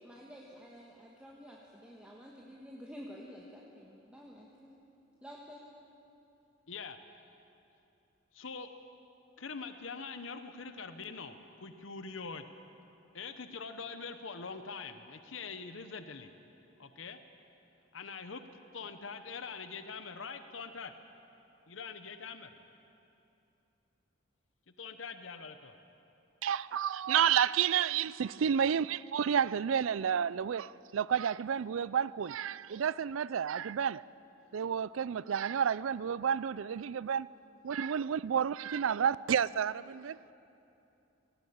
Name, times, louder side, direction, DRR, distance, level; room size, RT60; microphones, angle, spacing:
voice 1, 0.0-4.7 5.2-5.6, equal, 5° right, 1.5 m, -50 dB
voice 2, 8.3-8.7 9.4-12.4 13.1-16.3 16.8-17.2 17.9-18.4 18.7-20.9 21.7-22.5 24.8-25.8, left 5 dB, 70° left, 0.9 m, -43 dB
voice 3, 26.4-34.0 34.5-37.3 37.6-40.2, right 8 dB, 80° right, 0.4 m, -30 dB
18.5 x 16.5 x 8.6 m
head